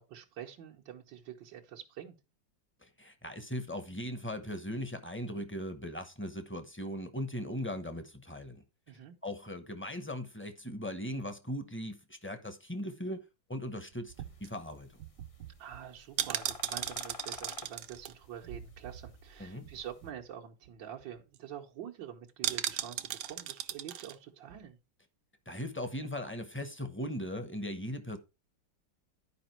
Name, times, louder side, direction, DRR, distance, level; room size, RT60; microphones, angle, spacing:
voice 1, 0.0-2.2 8.9-9.2 15.6-24.8, right 9 dB, 90° right, 1.9 m, -46 dB
voice 2, 2.8-8.6 9.2-13.2 13.5-14.1 14.4-14.9 19.4-19.7 25.5-28.2, equal, 10° left, 0.7 m, -39 dB
sound 1, 13.9-19.3 19.6-19.7 20.0-20.3 20.7-20.8 21.0-21.4 22.4-24.2 24.5-24.6, right 11 dB, 70° right, 1.2 m, -38 dB
sound 2, 14.1-20.0, left 4 dB, 45° left, 0.4 m, -51 dB
11.0 x 5.1 x 4.5 m
omnidirectional pair, 2.0 m